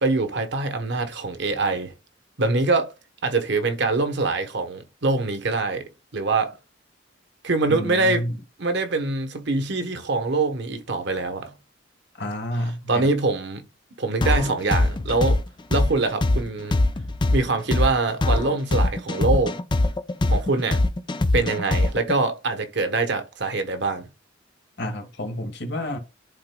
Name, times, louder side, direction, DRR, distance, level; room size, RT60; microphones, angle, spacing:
voice 1, 0.0-1.9 2.4-2.9 3.2-6.5 7.4-8.2 8.6-11.5 12.9-13.6 14.0-15.4 15.7-16.8 17.3-19.5 20.3-20.8 21.3-24.1, right 3 dB, 65° right, 1.1 m, -24 dB
voice 2, 7.7-8.3 12.2-13.1 24.8-26.0, left 1 dB, 65° left, 1.5 m, -29 dB
sound 1, 14.2-22.1, left 2 dB, 25° left, 0.5 m, -21 dB
11.5 x 3.9 x 2.2 m
head